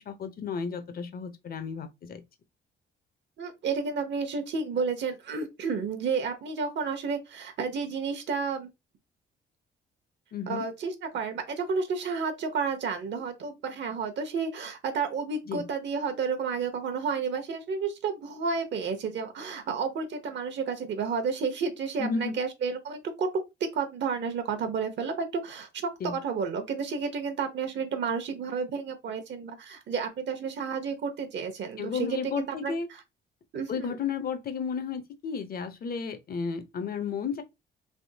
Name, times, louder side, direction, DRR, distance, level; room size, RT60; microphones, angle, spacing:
voice 1, 0.0-2.2 10.3-10.6 15.5-15.7 22.0-22.4 26.0-26.2 31.8-32.9 33.7-37.4, left 5 dB, 50° left, 0.7 m, -33 dB
voice 2, 3.4-8.7 10.5-23.3 23.7-32.7 33.5-33.9, right 5 dB, 65° right, 0.9 m, -31 dB
3.5 x 2.7 x 2.7 m
cardioid pair, 90°, 20 cm